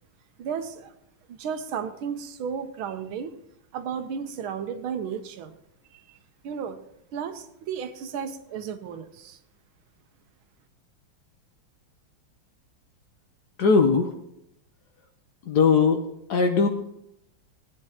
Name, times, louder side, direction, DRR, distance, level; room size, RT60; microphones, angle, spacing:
voice 1, 0.4-0.9 1.3-3.3 3.7-5.6 6.4-6.8 7.1-9.4, right 7 dB, 75° right, 9 dB, 1.6 m, -33 dB
voice 2, 13.6-14.1 15.5-16.0 16.3-16.7, left 5 dB, 60° left, 5 dB, 1.2 m, -19 dB
17.0 x 9.1 x 2.8 m, 0.81 s
omnidirectional pair, 2.4 m